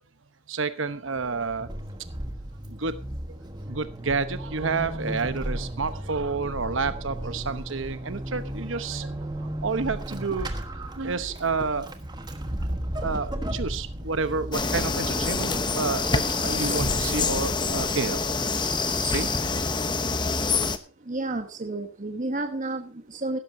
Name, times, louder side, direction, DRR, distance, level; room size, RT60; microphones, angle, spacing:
voice 1, 0.5-1.7 2.7-2.9 3.7-9.1 9.6-10.5 11.0-11.9 13.0-18.2 19.0-19.7, right 4 dB, 65° right, 11 dB, 1.0 m, -29 dB
Vehicle / Accelerating revving vroom / Squeak, 1.2-18.4, right 1 dB, 20° right, 1.3 m, -35 dB
sound 1, 14.5-20.8, left 4 dB, 20° left, 0.9 m, -26 dB
voice 2, 20.7-23.4, right 2 dB, 35° right, 6 dB, 1.1 m, -31 dB
16.5 x 12.5 x 2.7 m, 0.33 s
head